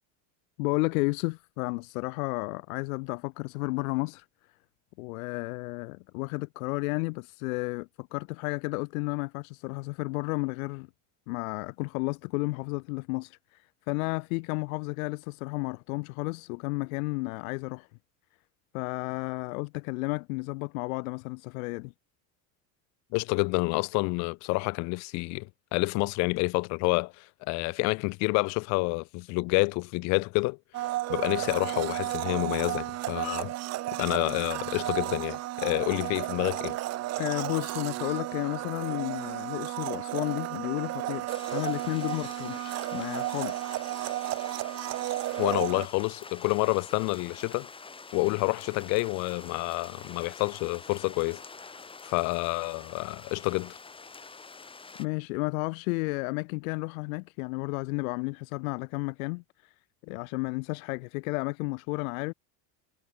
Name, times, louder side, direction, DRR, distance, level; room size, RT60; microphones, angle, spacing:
voice 1, 0.6-4.2 5.0-10.9 11.3-17.9 18.7-21.9 37.2-43.6 55.0-59.7 60.0-62.3, left 27 dB, 90° left, 0.9 m, -32 dB
voice 2, 23.1-33.5 34.0-36.8 45.4-47.7 48.1-51.4 52.0-53.8, left 28 dB, 45° left, 0.5 m, -28 dB
Domestic sounds home sounds, 30.7-45.9, right 16 dB, 40° right, 1.8 m, -33 dB
sound 1, 41.3-55.1, left 4 dB, 15° left, 7.7 m, -46 dB
cardioid pair, 165°, 41 cm